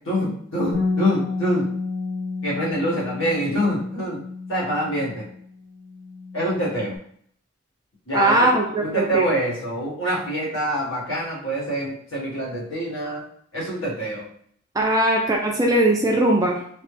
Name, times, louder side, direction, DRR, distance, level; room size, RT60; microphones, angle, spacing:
voice 1, 0.0-1.7 2.4-4.2 4.5-5.2 6.3-7.0 8.1-8.5 8.8-13.2 13.5-14.3, equal, 75° left, -6 dB, 1.5 m, -25 dB
Bass guitar, 0.7-5.4 5.7-7.0, left 3 dB, 60° left, 0.8 m, -30 dB
voice 2, 8.1-9.3 14.8-16.6, right 1 dB, 20° right, 0 dB, 0.3 m, -20 dB
3.2 x 2.1 x 3.2 m, 0.62 s
head